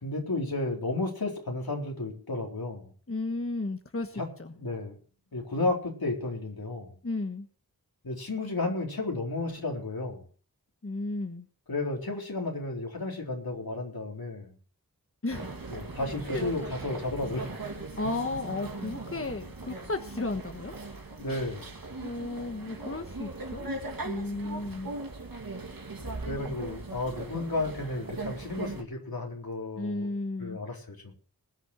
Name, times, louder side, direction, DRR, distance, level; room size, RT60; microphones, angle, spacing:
voice 1, 0.0-2.9 4.2-4.3 4.6-5.0 5.3-6.9 8.0-10.3 11.7-14.5 15.7-17.6 21.2-21.7 26.3-30.1 30.4-31.1, left 2 dB, 80° left, 0 dB, 4.2 m, -33 dB
voice 2, 3.1-4.5 7.0-7.5 10.8-11.5 15.2-15.6 16.3-16.4 18.0-20.7 22.0-23.7 24.0-24.9 29.8-30.6, left 2 dB, 40° left, 6 dB, 1.3 m, -34 dB
sound 1, 15.3-28.8, right 3 dB, 70° right, 2.4 m, -39 dB
20.0 x 7.0 x 5.9 m, 0.42 s
wide cardioid pair, 45°, 36 cm